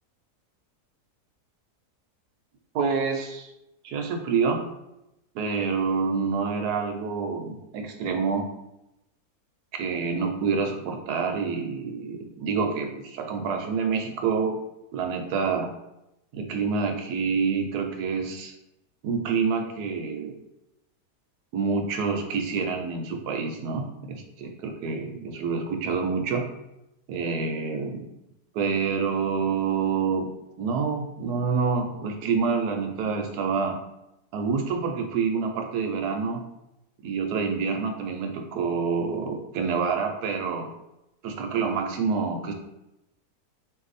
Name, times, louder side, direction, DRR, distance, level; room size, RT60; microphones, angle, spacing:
voice 1, 2.7-3.5 3.8-4.7 5.3-8.5 9.7-14.6 14.9-15.7 16.3-18.5 19.0-20.4 21.5-26.5 27.1-28.1 28.5-30.3 30.6-33.8 34.3-36.5 37.0-40.7 41.2-42.5, right 5 dB, 80° right, 4 dB, 1.2 m, -27 dB
4.1 x 2.7 x 4.1 m, 0.90 s
omnidirectional pair, 1.7 m